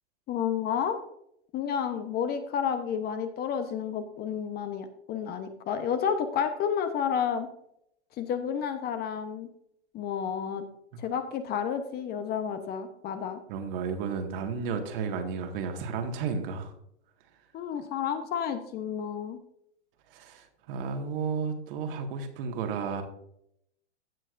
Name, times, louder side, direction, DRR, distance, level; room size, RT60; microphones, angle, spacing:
voice 1, 0.3-1.0 1.5-7.5 8.2-9.5 9.9-10.6 11.0-13.4 17.5-19.4, left 7 dB, 30° left, 9 dB, 0.9 m, -31 dB
voice 2, 13.5-16.7 20.1-23.0, right 5 dB, 50° right, 5 dB, 1.8 m, -33 dB
16.0 x 6.3 x 2.6 m, 0.74 s
hypercardioid pair, 115°, 34 cm